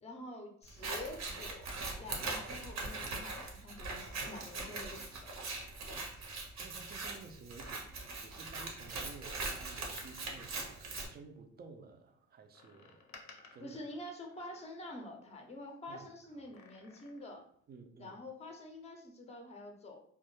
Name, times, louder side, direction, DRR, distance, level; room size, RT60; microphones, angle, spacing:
voice 1, 0.0-1.7 2.0-5.5 13.6-17.4 18.0-20.0, left 1 dB, 20° left, 3 dB, 0.5 m, -47 dB
Scissors, 0.7-11.1, right 3 dB, 60° right, 0.7 m, -41 dB
voice 2, 6.6-7.9 8.2-13.0 13.5-13.8 15.9-16.1 17.7-18.2, right 4 dB, 35° right, 6 dB, 0.4 m, -53 dB
Door, 10.0-11.6 12.5-15.4 16.3-17.5 17.8-17.9, left 4 dB, 70° left, 0.6 m, -59 dB
2.2 x 2.0 x 2.9 m, 0.63 s
cardioid pair, 90°, 30 cm